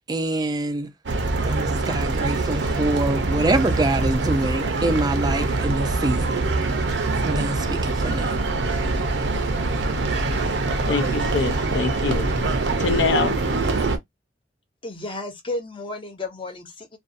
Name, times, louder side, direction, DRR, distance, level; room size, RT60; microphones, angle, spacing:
voice 1, 0.1-0.9 1.5-6.4 7.2-8.4, right 2 dB, 20° right, 0.4 m, -25 dB
sound 1, 1.1-14.0, right 3 dB, 65° right, 0.6 m, -24 dB
voice 2, 10.9-12.3 12.8-13.4, left 4 dB, 70° left, 0.5 m, -24 dB
voice 3, 14.8-17.0, left 2 dB, 30° left, 0.6 m, -33 dB
2.5 x 2.3 x 2.5 m
head